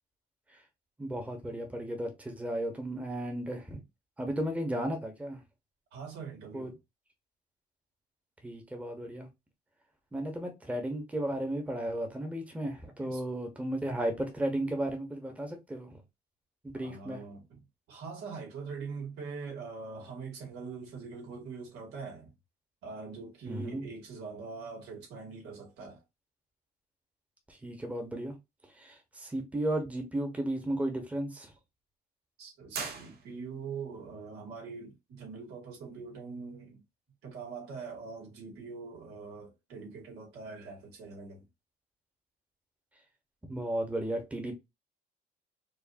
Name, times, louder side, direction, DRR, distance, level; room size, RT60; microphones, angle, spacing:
voice 1, 1.0-3.8 4.2-5.4 6.5-6.7 8.4-9.3 10.1-15.9 16.7-17.2 23.5-23.8 27.5-28.3 28.8-31.5 43.5-44.5, right 1 dB, 10° right, 1.1 m, -34 dB
voice 2, 5.9-6.8 13.0-13.2 16.7-17.6 17.9-22.3 22.8-26.0 32.4-36.8 37.2-41.5, right 4 dB, 85° right, 2.2 m, -43 dB
sound 1, 32.7-33.7, right 5 dB, 65° right, 1.3 m, -40 dB
4.7 x 2.6 x 2.7 m
cardioid pair, 110°, 17 cm